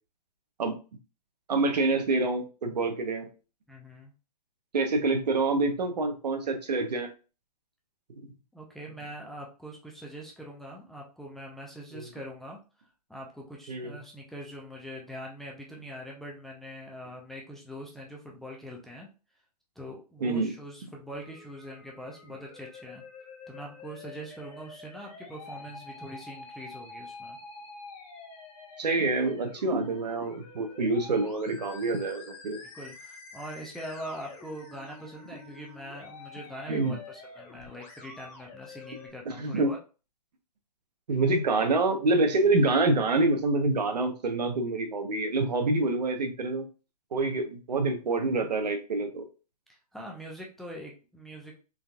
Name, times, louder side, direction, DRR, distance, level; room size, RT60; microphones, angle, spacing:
voice 1, 1.5-3.3 4.7-7.1 11.9-12.1 13.7-14.0 20.2-20.5 28.8-32.6 36.7-37.0 39.3-39.7 41.1-46.6 47.1-49.2, right 3 dB, 85° right, 5 dB, 1.0 m, -26 dB
voice 2, 3.7-4.1 8.5-12.6 13.1-19.1 19.8-23.0 23.5-27.4 32.7-39.8 47.2-47.3 49.7-51.6, equal, ahead, -3 dB, 0.5 m, -43 dB
Musical instrument, 21.1-39.1, left 3 dB, 30° left, 0.9 m, -47 dB
3.8 x 2.6 x 2.3 m, 0.33 s
hypercardioid pair, 140°, 21 cm